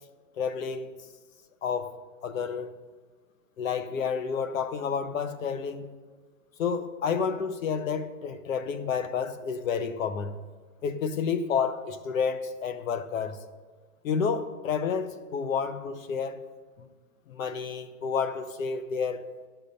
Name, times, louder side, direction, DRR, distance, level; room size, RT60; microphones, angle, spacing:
voice 1, 0.4-0.9 1.6-1.9 2.2-2.7 3.6-5.9 6.6-10.4 10.8-13.4 14.0-16.4 17.3-19.2, left 6 dB, 60° left, 0.9 m, -30 dB
12.0 x 5.9 x 6.8 m
supercardioid pair, 180°, 45 cm